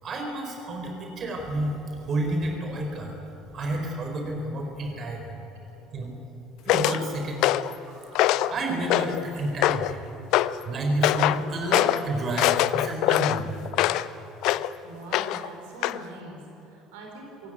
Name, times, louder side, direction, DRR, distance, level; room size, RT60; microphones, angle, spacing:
voice 1, 0.0-5.4 5.9-6.1 6.6-7.5 7.8-10.0 10.6-13.5, right 1 dB, 40° right, 3 dB, 4.5 m, -30 dB
sound 1, 6.7-7.0 7.4-7.7 8.1-8.5 8.9-9.2 9.6-9.9 10.3-10.6 11.0-11.4 11.7-12.0 12.4-14.1 14.4-14.7 15.1-15.5 15.8-16.0, left 14 dB, 55° left, 0.6 m, -23 dB
voice 2, 14.8-17.5, right 2 dB, 60° right, 1 dB, 4.5 m, -43 dB
26.0 x 16.5 x 9.4 m, 3.0 s
figure-of-eight pair, 60°, 0 cm